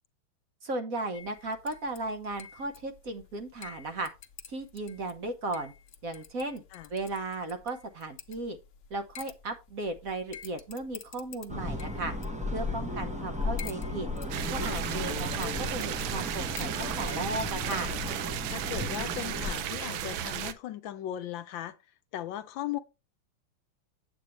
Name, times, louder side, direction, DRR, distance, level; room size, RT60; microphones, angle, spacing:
voice 1, 0.6-4.1 4.5-5.7 6.0-6.6 6.9-8.6 8.9-12.1 12.5-14.1 14.5-17.9, right 2 dB, 50° right, 1.2 m, -35 dB
sound 1, 1.1-19.7, left 7 dB, 50° left, 0.9 m, -51 dB
sound 2, 11.5-19.5, left 2 dB, 10° right, 0.4 m, -35 dB
voice 2, 12.9-13.3 18.5-21.8 22.1-22.8, left 12 dB, 75° left, 1.3 m, -38 dB
sound 3, 14.3-20.5, right 9 dB, 75° right, 1.4 m, -34 dB
8.6 x 8.2 x 3.1 m
omnidirectional pair, 2.2 m